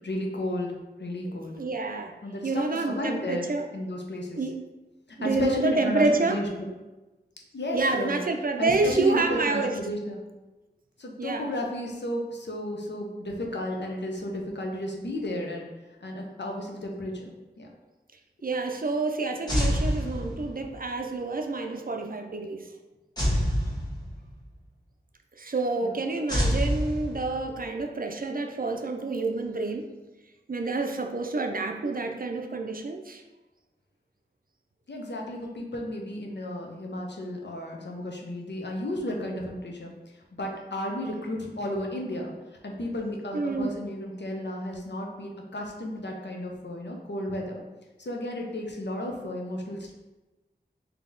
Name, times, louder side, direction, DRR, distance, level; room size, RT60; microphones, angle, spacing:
voice 1, 0.0-1.6 2.2-3.5 3.7-4.4 5.2-6.7 7.5-8.2 8.6-10.2 11.0-15.7 16.0-17.7 25.8-25.9 34.9-42.3 42.6-47.6 48.0-49.9, left 1 dB, 80° left, 0 dB, 0.7 m, -33 dB
voice 2, 1.6-2.1 2.4-3.6 4.4-4.5 5.2-6.4 7.7-9.7 11.2-11.5 18.4-22.7 25.4-29.9 30.5-33.2 43.3-43.7, right 3 dB, 55° right, 4 dB, 0.5 m, -28 dB
sound 1, 19.5-20.7 23.2-24.4 26.3-27.6, equal, 20° left, 1.4 m, -27 dB
3.9 x 2.8 x 3.8 m, 1.1 s
wide cardioid pair, 50°, 18 cm